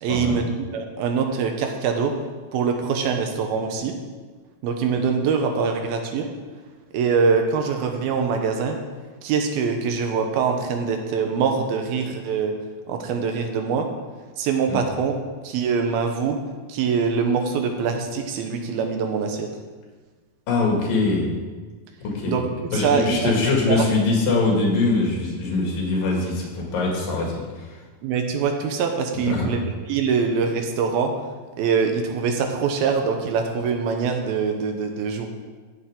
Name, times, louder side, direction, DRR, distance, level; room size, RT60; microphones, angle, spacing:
voice 1, 0.0-2.1 2.5-3.9 4.6-6.3 6.9-8.8 9.2-12.5 12.9-13.9 14.4-15.1 15.4-16.4 16.7-19.5 22.3-23.8 28.0-29.6 29.9-31.1 31.6-35.3, right 5 dB, 80° right, 4 dB, 2.7 m, -23 dB
voice 2, 20.5-21.3 22.0-22.4 22.7-27.8 29.3-29.5, left 3 dB, 65° left, -2 dB, 3.8 m, -23 dB
14.5 x 7.2 x 3.8 m, 1.4 s
omnidirectional pair, 4.4 m